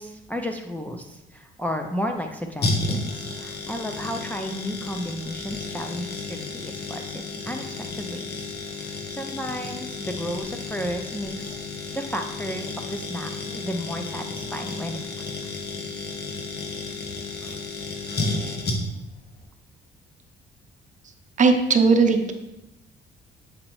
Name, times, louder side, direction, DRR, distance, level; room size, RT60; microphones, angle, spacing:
voice 1, 0.0-11.6 11.9-15.6 17.4-17.6, equal, 10° left, 2 dB, 0.4 m, -33 dB
sound 1, 2.6-19.1 19.4-19.5, left 3 dB, 55° left, 1.2 m, -32 dB
voice 2, 21.4-22.3, right 4 dB, 40° right, 5 dB, 0.7 m, -18 dB
7.5 x 4.9 x 3.1 m, 0.93 s
cardioid pair, 115°, 20 cm